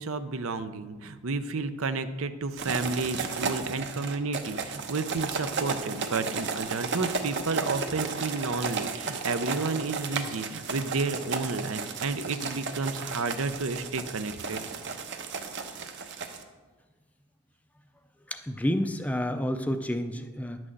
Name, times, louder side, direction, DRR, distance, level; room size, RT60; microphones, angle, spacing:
voice 1, 0.0-14.6, right 3 dB, 70° right, 11 dB, 0.7 m, -31 dB
sound 1, 2.6-16.4, right 4 dB, 55° right, 0.9 m, -34 dB
voice 2, 18.3-20.6, equal, 5° left, 8 dB, 0.4 m, -29 dB
11.0 x 6.2 x 7.7 m, 1.3 s
head